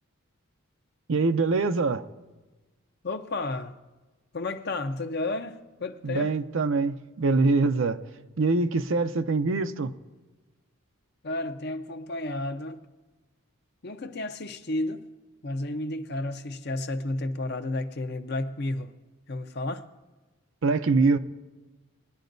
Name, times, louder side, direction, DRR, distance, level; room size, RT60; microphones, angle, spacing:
voice 1, 1.1-2.1 6.0-8.0 8.4-9.9 20.6-21.2, right 3 dB, 65° right, 0.5 m, -24 dB
voice 2, 3.0-3.8 4.3-6.3 11.2-12.9 13.8-15.0 15.4-18.9 19.3-19.9, left 2 dB, 50° left, 0.7 m, -32 dB
21.0 x 10.0 x 2.6 m
head